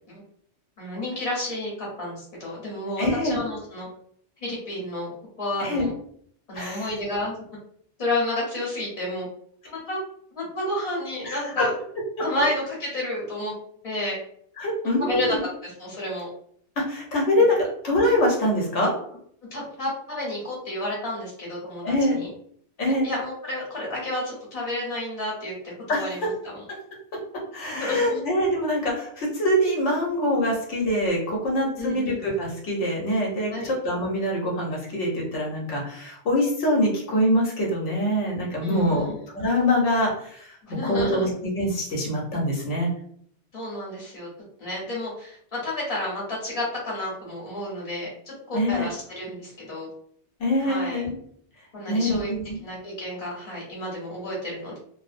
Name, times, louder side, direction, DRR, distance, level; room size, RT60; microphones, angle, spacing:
voice 1, 0.8-3.9 4.4-5.1 5.4-5.9 6.5-7.3 8.0-9.3 9.7-10.0 10.4-11.7 12.2-13.5 13.8-14.2 14.8-15.4 15.6-16.3 19.5-22.3 22.8-25.5 25.9-26.6 27.6-28.2 31.7-32.3 33.5-33.7 38.6-39.2 40.7-41.3 43.5-44.3 44.6-49.9 50.6-51.0 51.7-52.3 52.6-54.8, left 1 dB, 35° left, -4 dB, 0.9 m, -31 dB
voice 2, 3.0-3.4 5.6-5.9 6.5-6.9 11.2-11.6 14.6-15.4 16.8-18.9 21.8-22.2 22.8-23.1 25.9-26.3 26.7-26.8 27.5-39.1 39.3-40.5 40.8-42.9 48.5-48.9 50.4-51.2 51.9-52.6, left 1 dB, 90° left, -2 dB, 1.1 m, -24 dB
2.5 x 2.0 x 2.5 m, 0.64 s
omnidirectional pair, 1.2 m